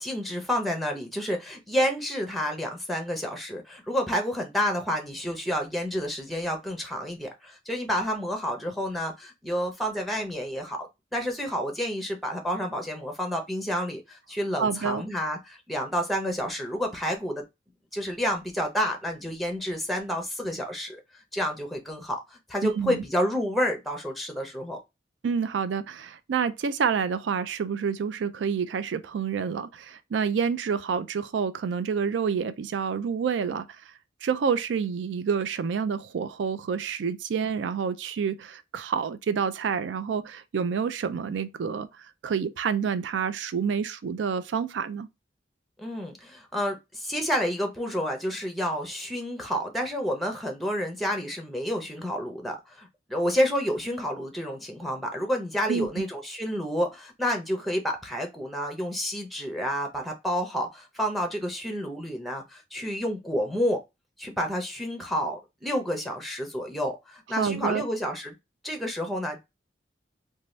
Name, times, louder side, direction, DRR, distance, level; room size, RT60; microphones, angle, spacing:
voice 1, 0.0-10.9 11.1-17.4 17.9-21.0 21.3-24.8 45.8-63.8 64.2-68.3 68.6-69.4, equal, ahead, 0.6 m, -29 dB
voice 2, 14.6-15.0 22.6-23.0 25.2-33.8 34.2-41.9 42.2-45.1 55.7-56.0 67.4-67.8, right 6 dB, 80° right, 0.4 m, -28 dB
2.7 x 2.2 x 3.1 m
head